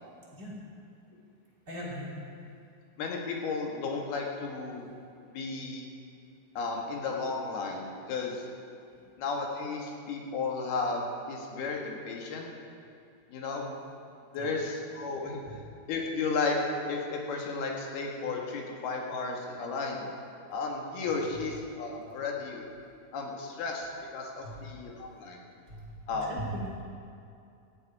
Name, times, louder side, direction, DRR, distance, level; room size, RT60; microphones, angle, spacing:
voice 1, 1.7-2.1 14.4-14.5 25.7-25.8 26.1-26.6, equal, 25° right, -6 dB, 3.5 m, -38 dB
voice 2, 3.0-4.9 5.2-5.9 6.6-8.4 9.2-12.5 13.3-13.7 14.3-15.6 15.9-16.6 16.9-20.1 20.5-22.7 23.1-25.4 26.1-26.5, left 4 dB, 85° left, 0 dB, 3.8 m, -34 dB
18.0 x 13.5 x 4.9 m, 2.5 s
omnidirectional pair, 4.3 m